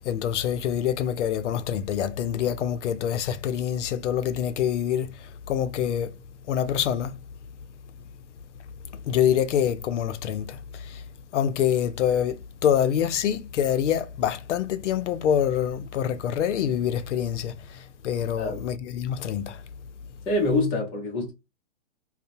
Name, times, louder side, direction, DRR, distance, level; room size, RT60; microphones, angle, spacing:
voice 1, 0.0-6.1 6.5-7.2 9.0-11.0 11.3-19.6, left 9 dB, 80° left, 0.5 m, -26 dB
voice 2, 20.3-21.3, left 2 dB, 15° left, 0.5 m, -25 dB
2.7 x 2.1 x 2.6 m
hypercardioid pair, 150°, 35 cm